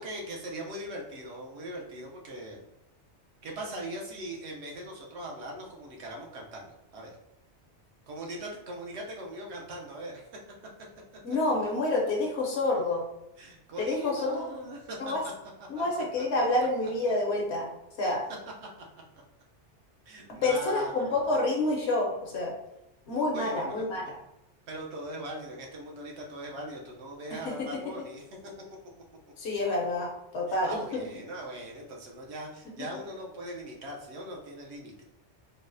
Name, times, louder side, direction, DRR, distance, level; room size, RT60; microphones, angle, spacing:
voice 1, 0.0-2.7 3.4-7.1 8.1-10.2 13.4-15.3 15.7-15.8 16.4-16.5 18.0-18.1 18.4-18.5 20.0-21.4 23.3-24.2 24.7-28.2 30.5-35.0, right 1 dB, 75° right, -1 dB, 0.9 m, -40 dB
voice 2, 11.2-13.0 13.8-14.4 15.0-15.2 15.7-17.7 18.0-18.2 20.3-22.5 23.1-24.0 27.4-27.8 29.4-31.0, left 2 dB, 70° left, -1 dB, 1.0 m, -28 dB
3.9 x 2.0 x 2.5 m, 0.88 s
omnidirectional pair, 1.2 m